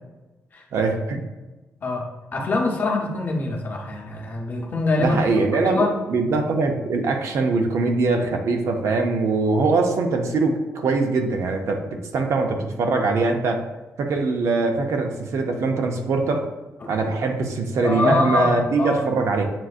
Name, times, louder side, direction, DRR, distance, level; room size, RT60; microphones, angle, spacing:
voice 1, 0.7-1.2 5.0-13.7 14.0-16.5 16.9-19.5, right 3 dB, 65° right, 4 dB, 0.5 m, -22 dB
voice 2, 2.3-5.2 5.6-5.9 17.8-19.0, left 3 dB, 35° left, 0 dB, 0.7 m, -24 dB
7.3 x 2.5 x 2.4 m, 1.1 s
wide cardioid pair, 155°, 5 cm